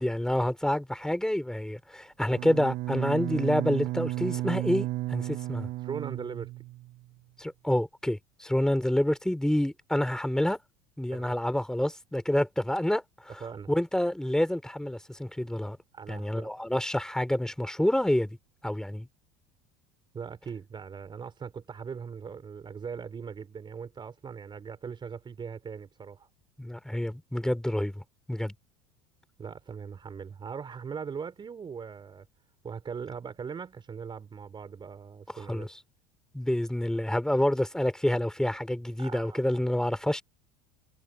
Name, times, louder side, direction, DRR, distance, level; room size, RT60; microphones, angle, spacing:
voice 1, 0.0-5.7 7.4-10.6 11.0-13.3 13.7-15.8 16.1-18.3 18.6-19.1 26.6-28.0 28.3-28.5 35.5-35.7 36.3-40.2, left 1 dB, 5° left, 5.2 m, -28 dB
Bowed string instrument, 2.3-7.0, right 18 dB, 55° right, 7.3 m, -33 dB
voice 2, 5.8-6.5 11.1-11.4 13.4-13.7 15.9-16.5 20.1-26.3 29.4-32.3 32.6-35.7 39.0-39.4, right 6 dB, 30° right, 4.6 m, -40 dB
hypercardioid pair, 80°, 16 cm